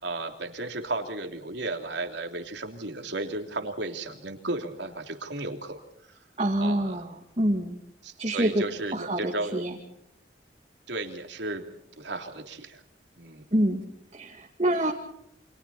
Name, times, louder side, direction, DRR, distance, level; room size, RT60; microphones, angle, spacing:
voice 1, 0.0-5.8 6.6-7.0 8.0-9.6 10.9-11.6 12.0-12.8 13.2-13.5, right 2 dB, 75° right, 4 dB, 3.2 m, -34 dB
voice 2, 6.4-7.8 8.2-8.6 8.9-9.7 13.5-13.8 14.1-14.9, right 1 dB, 35° right, 1 dB, 2.4 m, -26 dB
29.5 x 26.5 x 4.3 m, 0.71 s
head